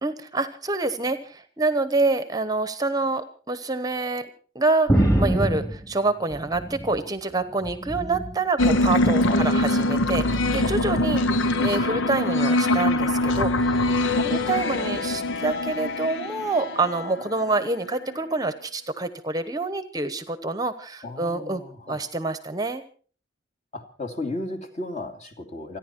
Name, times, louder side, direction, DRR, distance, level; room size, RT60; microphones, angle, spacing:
voice 1, 0.0-4.3 4.5-13.8 14.2-21.6 21.9-22.8, right 3 dB, 20° right, 11 dB, 1.0 m, -27 dB
sound 1, 4.9-7.1 7.5-8.4 9.3-9.7 10.7-10.8, right 1 dB, 15° left, 2.8 m, -25 dB
sound 2, 8.6-17.6, left 1 dB, 75° left, 0.9 m, -23 dB
voice 2, 21.0-22.0 23.7-25.8, left 2 dB, 35° left, 5 dB, 2.6 m, -34 dB
28.5 x 10.5 x 4.5 m, 0.43 s
head